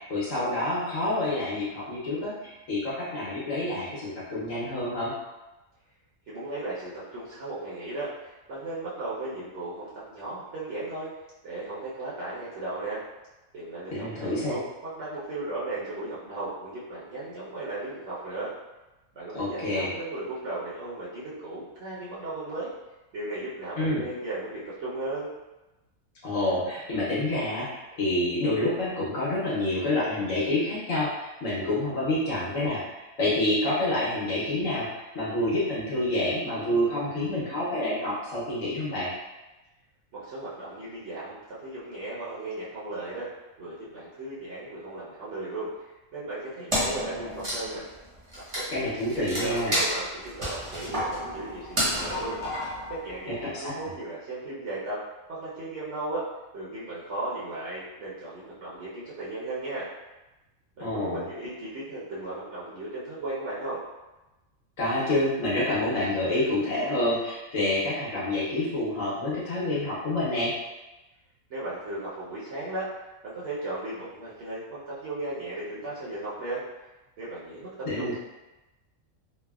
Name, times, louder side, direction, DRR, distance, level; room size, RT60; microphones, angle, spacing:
voice 1, 0.1-5.1 13.9-14.6 19.3-19.9 23.8-24.0 26.2-39.1 48.7-49.8 53.5-53.7 60.8-61.2 64.8-70.5 77.9-78.2, left 1 dB, 80° left, -8 dB, 1.2 m, -28 dB
voice 2, 6.3-11.1 11.4-13.0 13.5-18.5 19.1-22.7 23.1-25.3 40.1-43.3 43.6-47.9 48.3-52.4 52.9-55.0 55.3-56.2 56.5-59.9 60.8-63.8 71.5-72.9 73.2-76.6 77.2-78.2, right 2 dB, 65° right, -9 dB, 1.0 m, -36 dB
Wood, 46.7-53.4, equal, 30° right, 0.8 m, -31 dB
3.2 x 2.1 x 2.3 m, 1.1 s
omnidirectional pair, 1.3 m